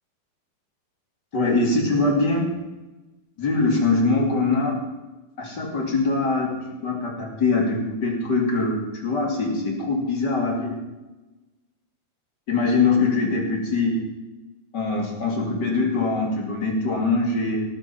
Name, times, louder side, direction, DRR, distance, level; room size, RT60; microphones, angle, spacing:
voice 1, 1.3-2.5 3.4-4.8 5.4-10.8 12.5-14.0 14.7-17.6, left 3 dB, 30° left, 1 dB, 2.3 m, -23 dB
18.0 x 8.0 x 5.8 m, 1.1 s
omnidirectional pair, 4.8 m